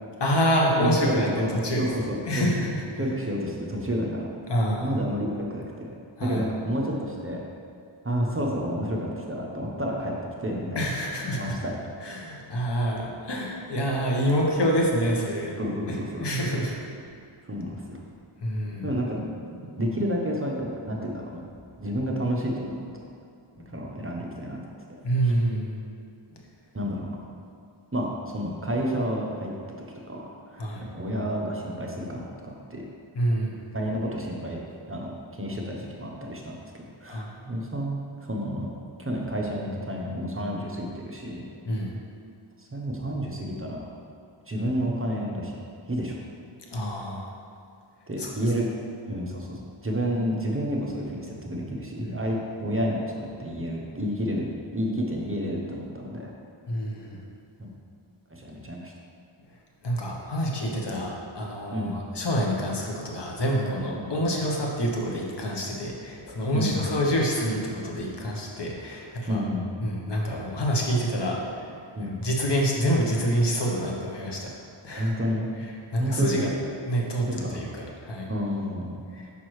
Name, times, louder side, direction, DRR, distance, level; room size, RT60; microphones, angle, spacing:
voice 1, 0.2-1.9 2.3-2.8 4.5-4.9 6.2-6.4 10.7-11.6 12.0-15.6 15.9-16.8 18.4-18.9 25.0-25.8 30.6-30.9 33.1-33.6 37.1-37.3 41.6-42.0 46.7-47.4 48.2-48.3 52.0-52.1 56.7-57.2 59.8-69.4 69.8-74.5 74.8-75.1 75.9-76.5 76.9-78.3 79.1-79.3, equal, 55° left, -1 dB, 1.0 m, -27 dB
voice 2, 0.8-2.7 3.0-4.3 4.8-7.4 8.0-10.1 10.4-10.8 11.3-11.8 15.6-16.2 17.5-18.0 18.8-19.4 19.8-21.4 21.8-22.8 23.7-24.6 25.2-25.3 26.7-27.1 27.9-30.6 30.9-32.2 32.7-32.8 33.7-34.6 34.9-36.7 37.0-41.4 42.6-43.9 44.5-45.6 45.9-46.2 48.1-48.7 49.1-54.4 54.7-56.3 57.6-57.7 58.3-58.9 60.9-61.0 61.7-62.0 64.0-64.1 66.5-66.8 69.3-69.7 71.9-72.2 75.0-75.5 76.0-76.5 77.3-77.7 78.3-79.0, equal, 25° right, -2 dB, 0.8 m, -30 dB
6.0 x 5.5 x 3.1 m, 2.3 s
wide cardioid pair, 65°, 50 cm